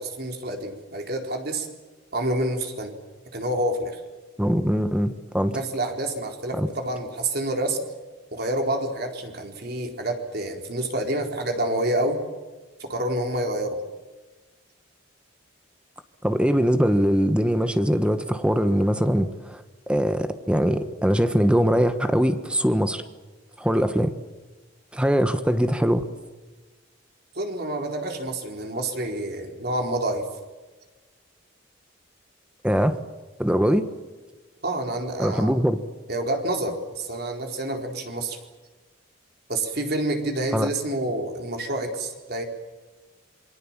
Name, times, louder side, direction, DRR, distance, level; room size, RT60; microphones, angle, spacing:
voice 1, 0.0-1.7 2.1-2.9 3.3-4.0 5.5-7.8 8.3-12.2 12.8-13.8 27.3-30.2 34.6-35.6 36.1-38.4 39.5-42.4, right 1 dB, 55° right, 3 dB, 4.2 m, -28 dB
voice 2, 4.4-5.6 6.5-6.7 16.2-23.0 23.6-24.1 24.9-26.1 32.6-33.0 33.4-33.9 35.2-35.8 40.5-40.7, equal, 5° right, 9 dB, 1.3 m, -22 dB
27.5 x 23.5 x 7.5 m, 1.3 s
head